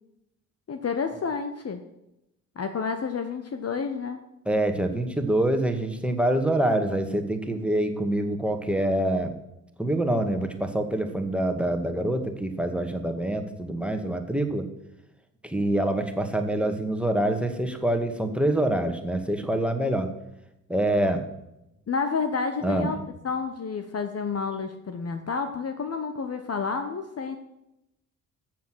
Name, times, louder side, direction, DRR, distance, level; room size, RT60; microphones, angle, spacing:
voice 1, 0.7-1.8 2.6-4.2 21.9-23.0 23.2-27.4, left 5 dB, 30° left, 8 dB, 1.1 m, -30 dB
voice 2, 4.5-9.3 9.8-14.7 15.4-20.1 20.7-21.2 22.6-22.9, right 1 dB, ahead, 6 dB, 2.0 m, -25 dB
14.0 x 7.6 x 6.4 m, 0.89 s
hypercardioid pair, 50°, 46 cm